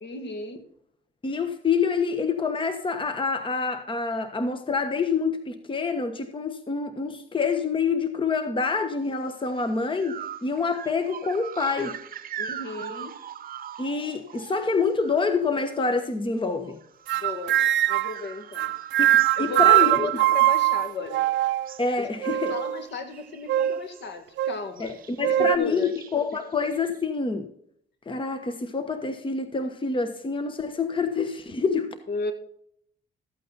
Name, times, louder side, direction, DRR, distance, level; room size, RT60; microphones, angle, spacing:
voice 1, 0.0-0.6 12.4-13.1 17.1-17.6 17.9-18.7 19.4-21.2 22.0-25.0 25.4-25.9 32.1-32.3, left 3 dB, 60° left, 1.9 m, -34 dB
voice 2, 1.2-12.0 13.8-16.8 19.0-19.1 19.4-20.1 21.8-22.5 24.8-27.5 28.1-31.9, left 4 dB, 25° left, 1.2 m, -27 dB
sound 1, 9.3-9.5 10.0-16.1 16.4-21.2 21.5-22.0 22.3-22.6 22.9-24.1 24.8-25.3 25.7-27.0, right 8 dB, 45° right, 0.8 m, -42 dB
sound 2, 17.1-18.2 18.5-21.7 22.2-22.8 23.5-23.8 24.4-24.6 25.2-25.6, right 14 dB, 70° right, 0.5 m, -22 dB
13.5 x 8.5 x 4.1 m
cardioid pair, 90°, 20 cm